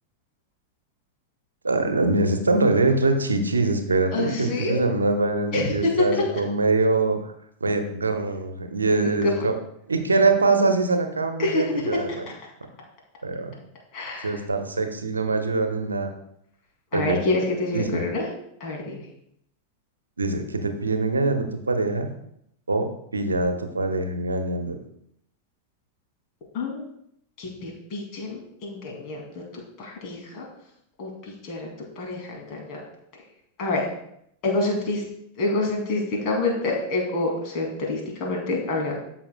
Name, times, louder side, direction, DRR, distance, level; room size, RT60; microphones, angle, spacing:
voice 1, 1.6-7.3 7.6-9.5 9.9-12.1 13.2-13.5 14.2-16.1 16.9-17.2 17.7-18.0 20.2-22.1 22.7-22.9 23.1-24.8, right 3 dB, 75° right, 6 dB, 0.9 m, -23 dB
voice 2, 4.1-4.7 5.5-6.2 8.9-9.3 11.4-12.4 13.9-14.4 16.9-18.3 18.6-19.0 26.5-26.9 27.4-30.5 31.0-31.7 32.0-32.8 33.6-33.9 34.4-35.0 35.4-39.0, left 2 dB, 40° left, 0 dB, 2.6 m, -27 dB
13.5 x 5.7 x 2.3 m, 0.73 s
figure-of-eight pair, 90°, 0 cm